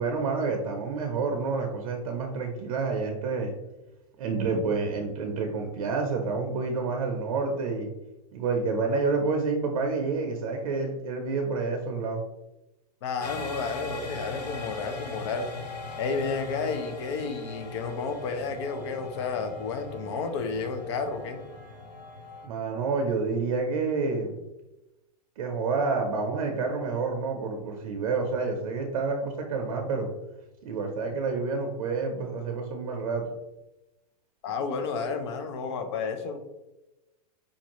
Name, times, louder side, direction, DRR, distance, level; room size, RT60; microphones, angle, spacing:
voice 1, 0.0-3.5 4.2-7.9 8.3-12.2 22.4-24.4 25.4-30.1 30.6-33.2, right 4 dB, 60° right, 3 dB, 0.6 m, -28 dB
voice 2, 13.0-15.5 16.0-21.4 34.4-36.4, left 4 dB, 45° left, 7 dB, 0.6 m, -31 dB
sound 1, 13.2-22.5, left 2 dB, 80° left, 0.9 m, -39 dB
5.1 x 2.6 x 2.9 m, 0.98 s
supercardioid pair, 160°, 20 cm